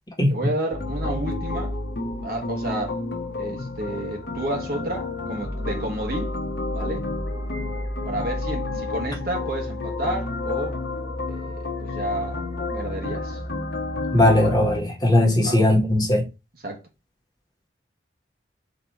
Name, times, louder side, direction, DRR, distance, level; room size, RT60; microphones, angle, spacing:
voice 1, 0.3-1.7 2.2-3.0 3.3-6.3 6.7-7.0 8.0-10.8 11.3-12.4 12.7-13.4 15.4-15.6 16.6-16.8, right 1 dB, 50° right, 1.2 m, -31 dB
sound 1, 0.7-14.8, left 2 dB, 60° left, 0.9 m, -30 dB
voice 2, 14.1-16.2, left 1 dB, 20° left, 1.3 m, -18 dB
4.1 x 2.7 x 4.7 m
head